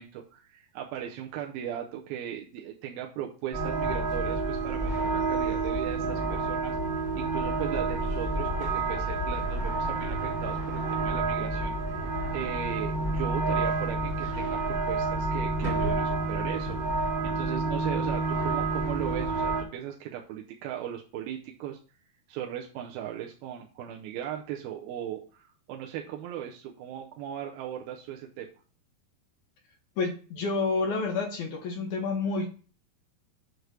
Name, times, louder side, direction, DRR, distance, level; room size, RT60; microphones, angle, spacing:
voice 1, 0.0-21.8 22.3-28.5, right 10 dB, 90° right, 1 dB, 2.6 m, -38 dB
sound 1, 3.5-19.6, right 3 dB, 25° right, 1.4 m, -29 dB
voice 2, 30.0-32.5, left 4 dB, 70° left, 2 dB, 2.0 m, -29 dB
8.0 x 3.3 x 6.1 m, 0.38 s
omnidirectional pair, 4.3 m